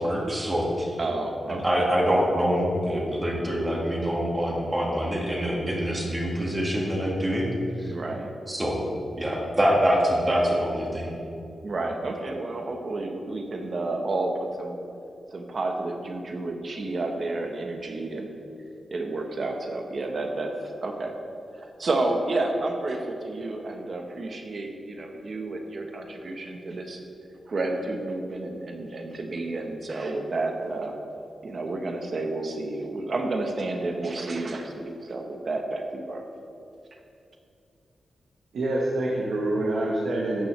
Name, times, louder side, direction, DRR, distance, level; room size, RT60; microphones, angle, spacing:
voice 1, 0.0-1.0 1.5-7.5 7.8-7.9 8.5-8.8 9.1-11.1, equal, 20° right, -2 dB, 1.9 m, -25 dB
voice 2, 1.0-1.8 7.9-8.3 11.6-14.7 15.3-18.3 18.9-21.1 21.5-27.0 27.5-30.9 31.4-36.2, right 2 dB, 45° right, 4 dB, 1.1 m, -30 dB
voice 3, 38.5-40.5, right 1 dB, 90° right, -3 dB, 1.2 m, -26 dB
13.0 x 9.0 x 3.3 m, 2.6 s
wide cardioid pair, 140°, 0 cm